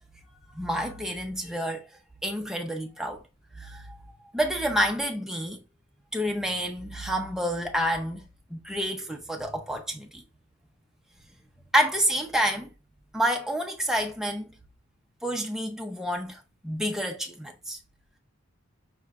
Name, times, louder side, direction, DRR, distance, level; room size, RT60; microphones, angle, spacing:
voice 1, 0.5-1.8 2.2-3.2 3.6-4.0 4.3-5.6 6.1-8.2 8.5-10.2 11.7-12.7 13.1-14.5 15.2-17.8, equal, ahead, 0.6 m, -28 dB
5.7 x 3.2 x 2.4 m
head